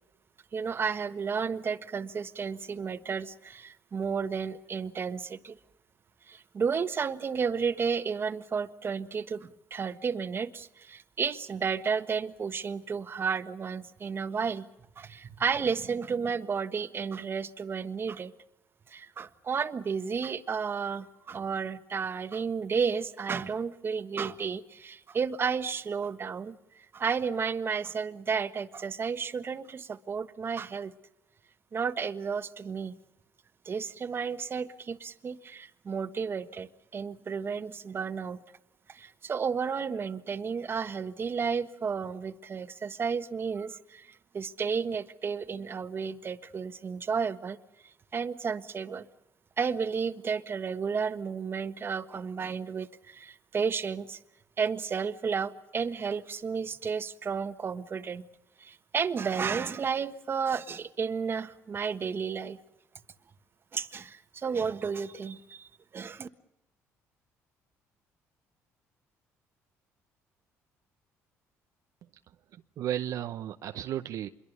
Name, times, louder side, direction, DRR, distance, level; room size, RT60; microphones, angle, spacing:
voice 1, 0.5-5.6 6.3-14.7 15.0-18.3 18.9-30.9 31.7-33.0 33.6-38.4 38.9-47.6 47.8-49.1 49.6-54.2 54.6-58.3 58.6-62.6 63.7-66.3, right 6 dB, 40° right, 1.4 m, -32 dB
voice 2, 72.5-74.3, right 11 dB, 65° right, 0.8 m, -34 dB
26.0 x 22.5 x 6.8 m
cardioid pair, 85°, 6 cm